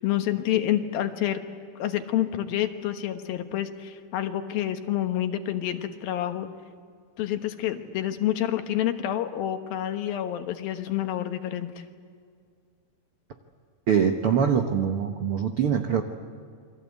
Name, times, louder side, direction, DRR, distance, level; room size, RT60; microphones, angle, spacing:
voice 1, 0.0-1.4 1.8-6.5 7.2-11.7, left 12 dB, 80° left, 7 dB, 3.1 m, -28 dB
voice 2, 13.9-16.0, right 7 dB, 75° right, 5 dB, 1.3 m, -23 dB
28.5 x 23.5 x 8.2 m, 2.1 s
omnidirectional pair, 4.2 m